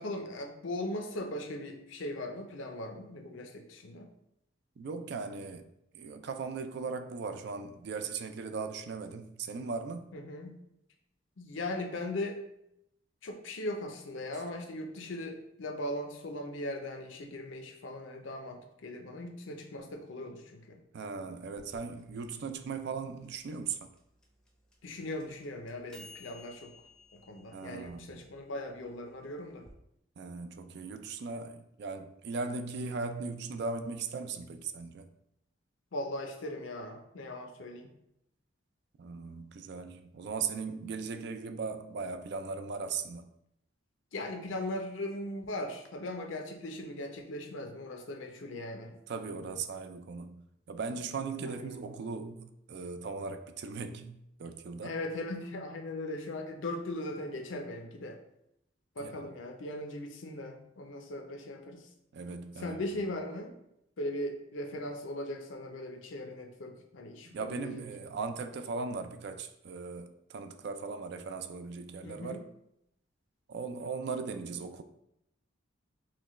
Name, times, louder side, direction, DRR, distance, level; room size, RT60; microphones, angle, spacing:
voice 1, 0.0-4.1 10.1-10.6 11.4-12.4 13.2-20.8 24.8-26.7 27.1-29.7 35.9-37.9 44.1-49.0 51.4-51.8 54.8-58.2 59.0-61.9 62.6-63.6 64.0-67.9 72.0-72.4, left 1 dB, 75° left, 0.6 m, -39 dB
voice 2, 4.8-10.1 20.9-23.9 27.5-28.2 30.2-35.1 39.0-43.3 49.1-54.9 59.0-59.3 62.1-62.8 67.3-72.5 73.5-74.8, right 4 dB, 55° right, 0.3 m, -38 dB
sound 1, 21.6-29.7, left 2 dB, 5° left, 0.5 m, -57 dB
5.7 x 2.2 x 3.1 m
head